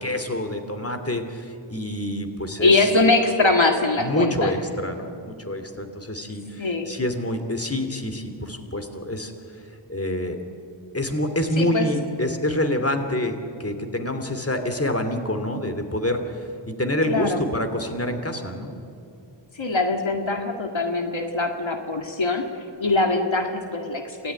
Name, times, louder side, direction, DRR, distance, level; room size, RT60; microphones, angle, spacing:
voice 1, 0.0-2.9 4.0-9.3 9.9-10.4 10.9-18.7, left 1 dB, 30° left, 7 dB, 3.0 m, -27 dB
voice 2, 2.6-4.5 6.6-6.9 11.6-11.9 17.1-17.4 19.5-22.5 22.8-24.3, left 2 dB, 75° left, 3 dB, 2.1 m, -22 dB
27.5 x 18.0 x 9.9 m, 2.6 s
wide cardioid pair, 50°, 47 cm